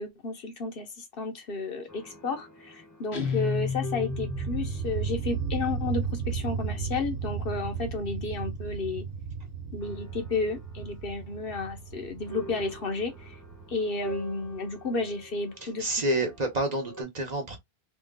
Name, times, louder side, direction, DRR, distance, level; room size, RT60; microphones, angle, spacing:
voice 1, 0.0-9.0 9.7-13.4 13.7-15.9, left 3 dB, 65° left, 1.1 m, -32 dB
sound 1, 1.9-17.0, right 2 dB, 20° left, 0.8 m, -48 dB
Guitar, 3.1-4.8, left 6 dB, 90° left, 1.1 m, -31 dB
sound 2, 3.6-15.1, right 6 dB, 85° right, 0.9 m, -35 dB
voice 2, 15.6-17.6, right 1 dB, 45° right, 1.0 m, -29 dB
3.1 x 2.4 x 3.5 m
omnidirectional pair, 1.0 m